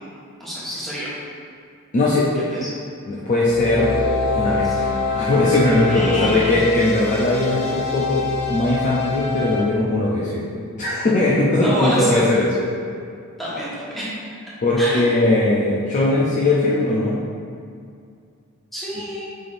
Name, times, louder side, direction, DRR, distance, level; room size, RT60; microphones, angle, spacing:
voice 1, 0.4-1.1 2.5-2.6 4.6-4.8 5.8-6.6 11.6-12.3 13.4-14.1 14.8-15.1 18.7-19.3, equal, ahead, -11 dB, 1.3 m, -27 dB
voice 2, 1.9-2.3 3.1-4.0 4.3-12.7 14.6-17.2, left 2 dB, 35° left, -6 dB, 0.5 m, -19 dB
sound 1, 3.4-9.6, left 4 dB, 65° left, 0.8 m, -25 dB
5.6 x 3.4 x 2.5 m, 2.3 s
head